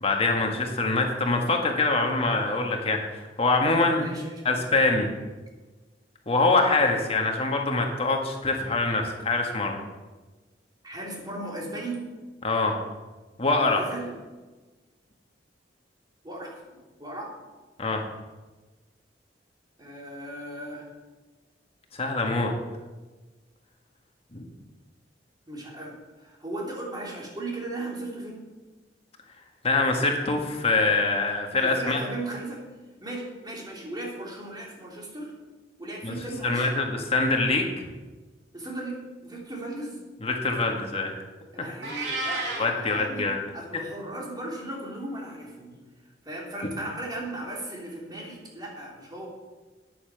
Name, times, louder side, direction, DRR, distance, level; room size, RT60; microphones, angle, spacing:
voice 1, 0.0-4.1 4.4-5.1 6.3-9.7 12.4-12.7 13.4-13.8 17.8-18.0 21.9-22.5 24.3-24.4 29.6-32.0 36.0-36.1 36.4-37.7 40.2-41.1 42.6-43.4, left 3 dB, 35° left, 2 dB, 1.6 m, -24 dB
voice 2, 3.9-4.9 10.8-12.0 13.6-14.1 16.2-16.6 17.0-17.3 19.8-20.9 25.5-28.5 31.6-32.6 33.0-35.3 35.8-36.7 38.5-40.0 41.5-45.8 46.2-49.3, right 1 dB, 25° right, -2 dB, 2.9 m, -37 dB
Meow, 41.8-42.7, right 2 dB, 80° right, 2.6 m, -30 dB
9.3 x 8.5 x 6.9 m, 1.3 s
head